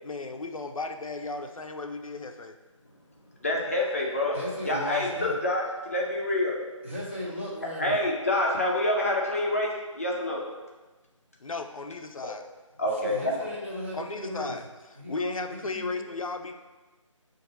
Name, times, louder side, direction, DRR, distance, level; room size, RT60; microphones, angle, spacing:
voice 1, 0.0-2.6 11.4-12.4 13.9-14.6 15.1-16.5, left 3 dB, 90° left, 6 dB, 0.5 m, -35 dB
voice 2, 3.4-4.4 4.7-6.6 7.8-10.4 12.8-13.2, left 1 dB, 25° left, -2 dB, 0.5 m, -27 dB
voice 3, 4.3-5.4 6.8-8.0 12.9-14.6 15.0-16.0, left 1 dB, 20° right, -6 dB, 0.7 m, -36 dB
6.4 x 2.5 x 2.9 m, 1.2 s
figure-of-eight pair, 165°, 17 cm